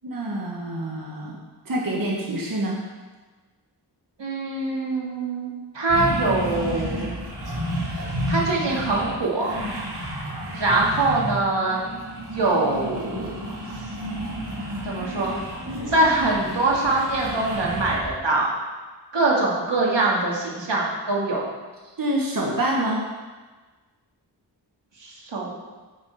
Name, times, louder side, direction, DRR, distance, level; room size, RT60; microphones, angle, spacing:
voice 1, 0.0-1.4 1.6-2.8 22.0-23.0, right 1 dB, 50° right, -2 dB, 1.6 m, -26 dB
voice 2, 4.2-5.5 5.7-7.2 7.8-9.5 10.5-11.8 12.3-13.4 13.7-13.9 14.8-15.4 15.9-18.5 19.1-21.4 25.0-25.5, right 2 dB, 85° right, -3 dB, 2.5 m, -23 dB
sound 1, 5.9-18.1, equal, 70° right, 3.0 m, -31 dB
9.5 x 8.4 x 5.0 m, 1.3 s
wide cardioid pair, 105°, 42 cm